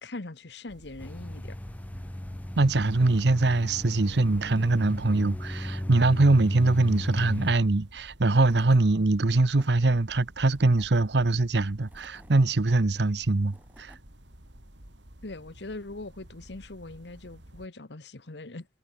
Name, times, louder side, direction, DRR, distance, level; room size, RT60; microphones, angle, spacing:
voice 1, 0.0-1.6 1.9-2.0 15.2-18.7, left 2 dB, 70° left, 1.3 m, -41 dB
sound 1, 0.7-17.7, equal, 85° right, 5.4 m, -52 dB
sound 2, 1.0-7.6, left 1 dB, 10° left, 0.5 m, -36 dB
voice 2, 2.6-14.0, right 2 dB, 65° right, 0.9 m, -23 dB
Tools / Wood, 7.9-8.0 8.3-8.9 9.3-9.7 10.4-11.0 11.7-12.5 13.2-14.0, right 1 dB, 10° right, 3.2 m, -56 dB
head